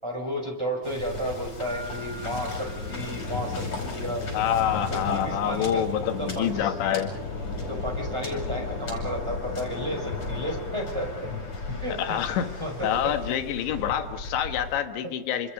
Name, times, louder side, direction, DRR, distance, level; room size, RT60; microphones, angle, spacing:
voice 1, 0.0-4.2 4.9-5.8 6.2-6.7 7.7-11.3 11.8-12.0 12.6-12.9, equal, 5° right, 2 dB, 5.0 m, -32 dB
Waves surf, 0.8-14.8, left 3 dB, 25° left, 5.9 m, -34 dB
Mallet percussion, 1.7-4.2, right 2 dB, 75° right, 5.6 m, -45 dB
voice 2, 4.3-7.1 11.9-12.5 12.8-15.5, left 9 dB, 70° left, 7 dB, 3.2 m, -27 dB
29.0 x 26.5 x 5.3 m, 0.97 s
omnidirectional pair, 5.9 m